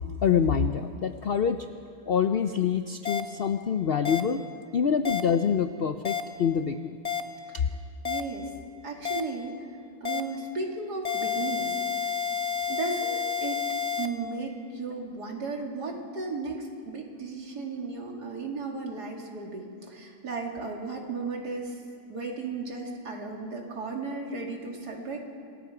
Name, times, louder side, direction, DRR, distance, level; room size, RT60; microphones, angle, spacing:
voice 1, 0.2-1.7 2.1-4.4 4.7-7.0 7.5-7.7, left 7 dB, 70° left, 9 dB, 0.5 m, -26 dB
sound 1, 3.0-3.2 4.0-4.2 5.0-5.2 6.0-6.2 7.0-7.2 8.0-8.2 9.0-9.2 10.0-10.2 11.0-14.1, left 7 dB, 25° left, 1.0 m, -29 dB
voice 2, 8.0-8.5 8.8-12.1 12.7-13.7 14.0-21.8 22.1-25.2, right 3 dB, 75° right, 0 dB, 3.0 m, -35 dB
27.0 x 19.5 x 5.0 m, 2.3 s
omnidirectional pair, 1.8 m